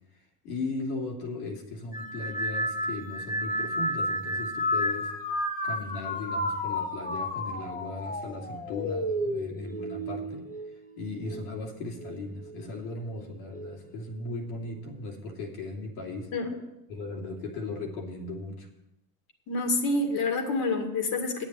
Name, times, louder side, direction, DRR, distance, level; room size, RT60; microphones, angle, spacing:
voice 1, 0.4-5.1 5.6-10.4 11.0-16.3 16.9-18.7, left 2 dB, 75° left, 0 dB, 2.7 m, -37 dB
sound 1, 1.9-11.5 12.0-12.6 13.5-13.9, left 1 dB, 20° left, 1.4 m, -32 dB
voice 2, 19.5-21.4, left 2 dB, 50° left, 5 dB, 2.2 m, -27 dB
9.6 x 7.4 x 8.1 m, 0.93 s
hypercardioid pair, 75°, 45 cm